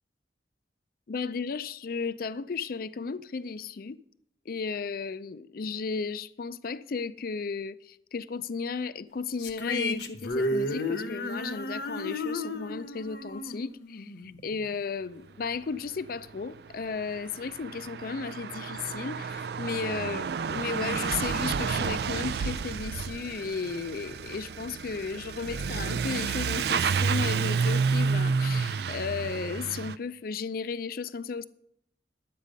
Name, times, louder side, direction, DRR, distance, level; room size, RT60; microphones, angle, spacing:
voice 1, 1.1-4.0 4.5-31.4, left 5 dB, 55° left, 0.4 m, -34 dB
sound 1, 9.4-14.8, left 1 dB, 75° left, 1.1 m, -33 dB
Truck / Accelerating revving vroom, 16.3-16.4 16.5-30.0, right 5 dB, 60° right, 0.4 m, -30 dB
11.5 x 8.4 x 5.2 m
head